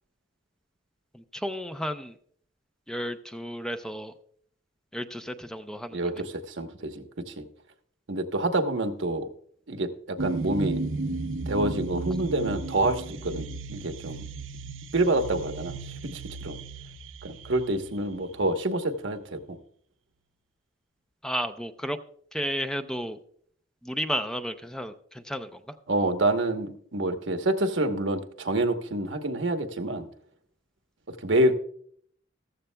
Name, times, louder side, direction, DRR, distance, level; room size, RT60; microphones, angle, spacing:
voice 1, 1.1-2.1 2.9-4.1 4.9-6.0 21.2-22.0 22.3-23.2 23.8-25.6, equal, 5° left, 8 dB, 0.5 m, -32 dB
voice 2, 5.9-7.5 8.1-9.3 9.7-10.8 11.5-14.2 14.9-16.6 17.2-19.6 25.9-30.1 31.1-31.5, right 1 dB, 70° right, 7 dB, 1.0 m, -27 dB
sound 1, 10.2-18.8, right 3 dB, 85° right, 0.8 m, -35 dB
14.5 x 13.5 x 2.2 m, 0.63 s
head